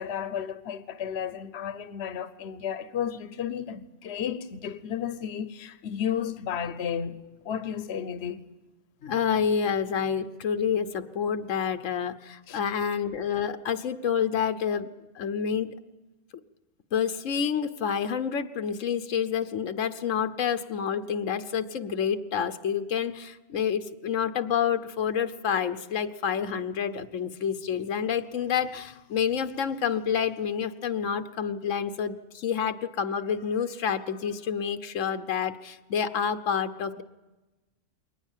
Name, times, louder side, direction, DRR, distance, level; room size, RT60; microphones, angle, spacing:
voice 1, 0.0-7.2 7.4-8.4 12.5-12.6, left 8 dB, 60° left, 1.1 m, -33 dB
voice 2, 9.0-14.9 15.1-15.7 16.9-37.0, left 7 dB, 85° left, 1.2 m, -28 dB
22.5 x 19.0 x 7.4 m
omnidirectional pair, 1.3 m